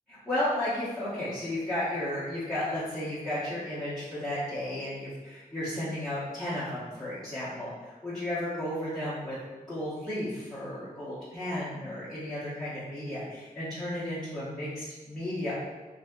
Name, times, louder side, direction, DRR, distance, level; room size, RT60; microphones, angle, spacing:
voice 1, 0.1-9.4 9.6-15.5, left 1 dB, ahead, -13 dB, 1.0 m, -33 dB
3.6 x 2.7 x 3.6 m, 1.2 s
wide cardioid pair, 155°, 15 cm